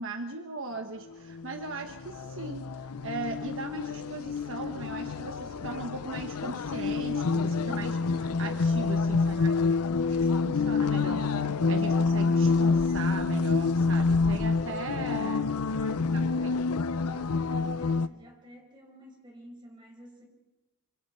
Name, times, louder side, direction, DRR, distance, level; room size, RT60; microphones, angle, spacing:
voice 1, 0.0-7.9 8.4-9.6 10.4-15.5 16.4-16.5, right 2 dB, 60° right, 5 dB, 1.3 m, -38 dB
sound 1, 1.3-18.1, left 4 dB, 85° left, 0.7 m, -27 dB
voice 2, 7.6-8.5 14.1-14.5 14.9-16.4 17.0-20.2, equal, 20° right, 0 dB, 5.2 m, -49 dB
26.0 x 25.5 x 4.5 m, 1.0 s
head